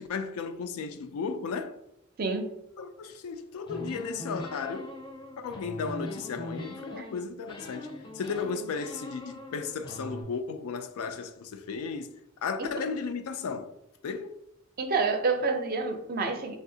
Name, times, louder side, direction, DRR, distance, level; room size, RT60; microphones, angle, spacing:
voice 1, 0.0-1.8 2.8-4.9 5.4-13.7 14.0-14.3, left 5 dB, 80° left, 0.3 m, -35 dB
voice 2, 2.2-2.5 6.9-7.0 12.6-12.7 14.8-16.6, right 4 dB, 45° right, 0.5 m, -28 dB
sound 1, 3.7-7.2 7.5-10.2, left 1 dB, 20° left, 0.5 m, -41 dB
3.4 x 2.7 x 2.6 m
head